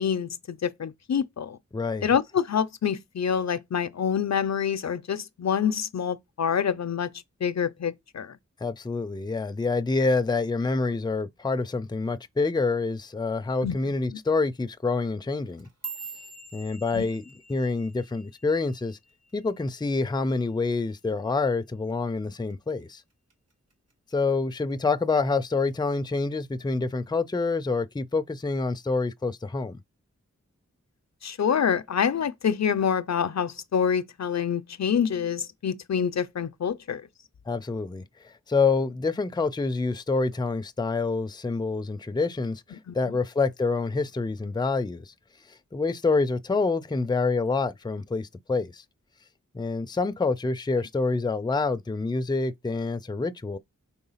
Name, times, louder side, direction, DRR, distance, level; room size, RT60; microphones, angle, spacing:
voice 1, 0.0-1.6 2.0-7.1 7.4-8.3 13.6-13.8 16.9-17.0 31.2-37.0 42.9-43.1, left 7 dB, 65° left, 0.5 m, -26 dB
voice 2, 1.7-2.1 8.6-15.7 16.5-17.2 17.5-19.0 19.3-23.0 24.1-29.8 37.5-38.0 38.5-45.1 45.7-48.8 49.5-53.6, left 3 dB, 15° left, 0.4 m, -27 dB
sound 1, 15.4-19.8 20.1-20.5 20.9-21.3 21.7-21.9 22.5-22.9 23.3-24.1 24.5-24.9 25.7-25.8, right 5 dB, 55° right, 1.7 m, -44 dB
4.5 x 3.8 x 5.6 m
wide cardioid pair, 65°, 30 cm